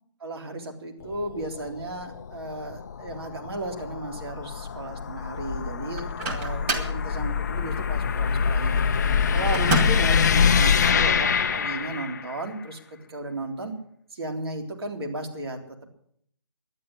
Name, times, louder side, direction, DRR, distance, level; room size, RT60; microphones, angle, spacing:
voice 1, 0.2-8.8 9.3-12.8 13.1-13.7 14.1-15.6, right 2 dB, 60° right, 2 dB, 3.7 m, -34 dB
sound 1, 1.0-12.4, left 6 dB, 40° left, 0.5 m, -25 dB
Microwave oven, 6.0-7.0 9.5-10.2, right 3 dB, 25° right, 2.4 m, -28 dB
12.0 x 10.0 x 9.9 m, 0.66 s
figure-of-eight pair, 155°, 15 cm